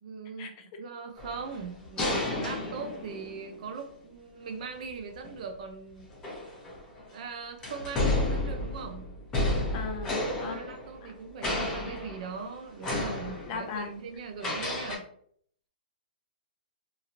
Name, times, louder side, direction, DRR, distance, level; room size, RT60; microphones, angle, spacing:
voice 1, 0.0-6.1 7.1-9.1 10.2-15.1, right 5 dB, 55° right, 5 dB, 0.6 m, -40 dB
sound 1, 1.2-3.7 5.1-5.3 6.1-7.1 7.6-11.2 11.4-12.5 12.8-13.8 14.4-15.0, left 2 dB, 15° left, 0.9 m, -32 dB
voice 2, 9.7-10.6 11.0-11.1 13.5-14.0, left 5 dB, 35° left, 3 dB, 0.5 m, -37 dB
2.9 x 2.8 x 2.5 m, 0.62 s
hypercardioid pair, 155°, 5 cm